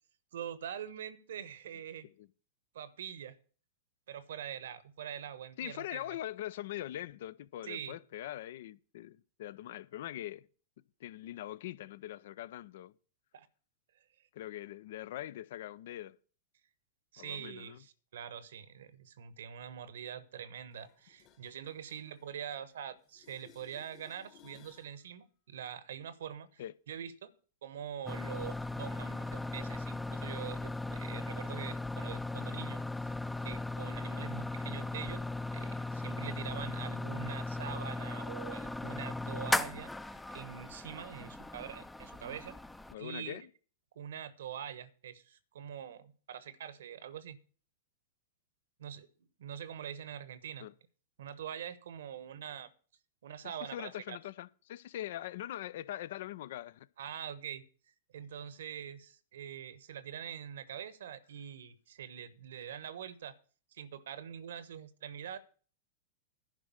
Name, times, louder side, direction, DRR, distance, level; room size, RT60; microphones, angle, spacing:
voice 1, 0.3-2.1 2.7-3.4 4.1-6.2 7.6-8.0 13.3-13.5 17.1-26.6 26.9-27.3 27.6-35.2 35.5-42.6 43.0-43.4 43.9-47.4 48.8-49.1 49.4-50.7 51.2-52.7 53.2-54.2 57.0-57.6 58.1-63.3 63.7-65.4, right 9 dB, 70° right, 1.1 m, -44 dB
voice 2, 5.6-10.5 11.0-12.9 14.3-16.2 17.2-17.8 26.6-26.7 42.9-43.5 50.6-50.7 53.4-56.9, left 13 dB, 65° left, 0.5 m, -42 dB
sound 1, 20.7-22.8 23.0-25.0 30.7-30.8, left 9 dB, 40° left, 1.5 m, -61 dB
sound 2, 28.1-42.9, left 2 dB, 5° left, 0.5 m, -38 dB
11.0 x 5.2 x 8.2 m
hypercardioid pair, 105°, 0 cm